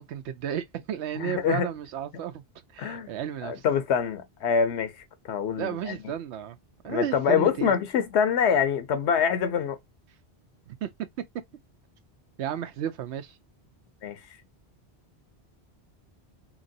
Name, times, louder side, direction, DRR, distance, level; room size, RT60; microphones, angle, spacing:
voice 1, 0.0-2.4 2.7-3.6 5.6-6.6 6.8-7.7 10.7-10.9 12.4-13.4, right 10 dB, 85° right, 0.9 m, -33 dB
voice 2, 1.2-1.7 2.8-3.1 3.4-6.0 6.9-9.8 14.0-14.2, left 7 dB, 85° left, 1.0 m, -25 dB
2.9 x 2.9 x 2.6 m
omnidirectional pair, 1.1 m